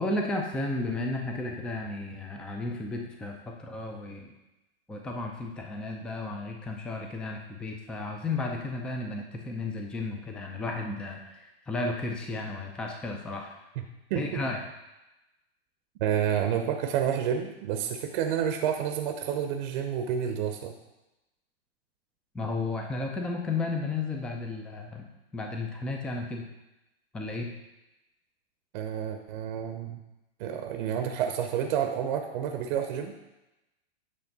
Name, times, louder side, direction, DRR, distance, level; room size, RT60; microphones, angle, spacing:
voice 1, 0.0-4.3 4.9-13.6 14.2-14.6 22.3-25.1 25.3-26.5 27.1-27.5, left 2 dB, 5° left, 2 dB, 0.4 m, -33 dB
voice 2, 14.1-14.4 16.0-20.7 28.7-30.0 30.4-33.2, right 8 dB, 50° right, 5 dB, 0.7 m, -29 dB
8.5 x 3.3 x 5.2 m, 0.98 s
hypercardioid pair, 135°, 31 cm